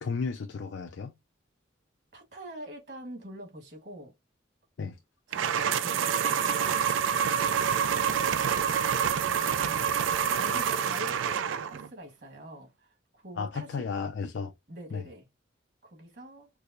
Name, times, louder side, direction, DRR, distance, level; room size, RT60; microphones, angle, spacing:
voice 1, 0.0-1.1 4.8-5.0 13.4-14.5 14.9-15.0, left 5 dB, 70° left, 0.4 m, -33 dB
voice 2, 2.1-4.1 5.3-6.8 9.2-9.9 10.3-13.9 14.7-15.3 15.8-16.5, right 1 dB, 60° right, 1.4 m, -45 dB
sound 1, 5.3-11.9, right 7 dB, 85° right, 0.4 m, -27 dB
4.6 x 2.0 x 2.5 m
head